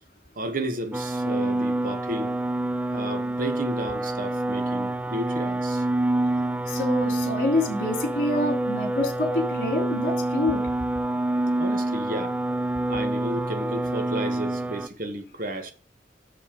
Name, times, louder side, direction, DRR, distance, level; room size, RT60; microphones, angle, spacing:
voice 1, 0.3-2.3 2.9-5.8 11.6-12.4 12.9-15.7, right 1 dB, 50° right, 1.5 m, -33 dB
sound 1, 0.9-14.9, right 1 dB, 10° right, 0.4 m, -27 dB
voice 2, 6.7-10.6, left 2 dB, 55° left, 2.8 m, -26 dB
7.5 x 6.9 x 5.2 m
head